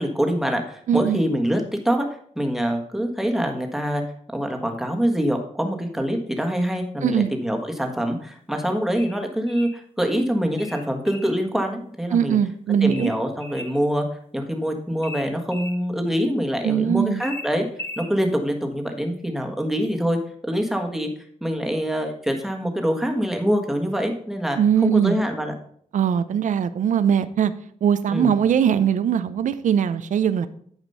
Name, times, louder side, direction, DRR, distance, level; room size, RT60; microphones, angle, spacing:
voice 1, 0.0-2.1 2.3-4.0 4.3-12.4 12.8-14.1 14.3-17.6 18.0-20.2 20.4-21.1 21.4-25.5 28.1-28.3, equal, ahead, 3 dB, 1.5 m, -25 dB
voice 2, 0.9-1.2 7.0-7.3 12.1-13.1 16.6-17.2 24.6-25.2 25.9-27.5 27.8-30.5, right 8 dB, 70° right, 13 dB, 0.6 m, -20 dB
sound 1, 9.0-9.8 10.6-11.4 12.9-13.8 15.0-15.8 17.2-18.1, left 2 dB, 15° left, 1.2 m, -37 dB
9.0 x 5.1 x 5.5 m, 0.62 s
cardioid pair, 105°, 13 cm